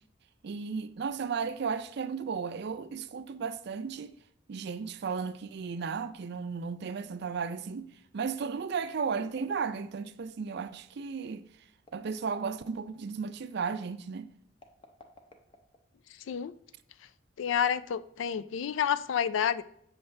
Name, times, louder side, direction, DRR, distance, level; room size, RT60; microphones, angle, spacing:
voice 1, 0.4-4.1 4.5-11.4 11.9-14.3, right 5 dB, 60° right, 0.4 m, -34 dB
sound 1, 8.8-10.2 11.8-12.9 14.5-16.1, left 2 dB, 25° left, 0.7 m, -55 dB
voice 2, 17.4-19.6, left 8 dB, 75° left, 0.3 m, -29 dB
7.7 x 5.8 x 3.2 m
head